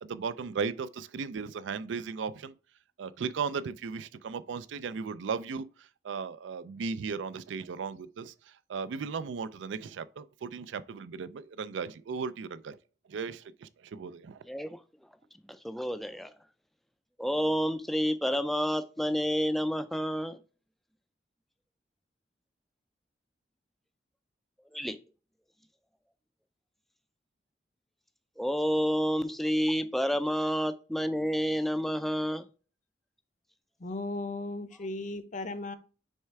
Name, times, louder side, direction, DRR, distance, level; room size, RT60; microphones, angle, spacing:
voice 1, 0.0-2.5 3.0-12.8 13.1-14.4, right 5 dB, 75° right, 0.4 m, -36 dB
voice 2, 14.5-14.8 15.5-16.3 17.2-20.4 24.7-25.0 28.4-32.5, equal, ahead, 0.3 m, -29 dB
voice 3, 33.8-35.8, left 2 dB, 40° left, 0.6 m, -36 dB
6.3 x 3.3 x 4.6 m
head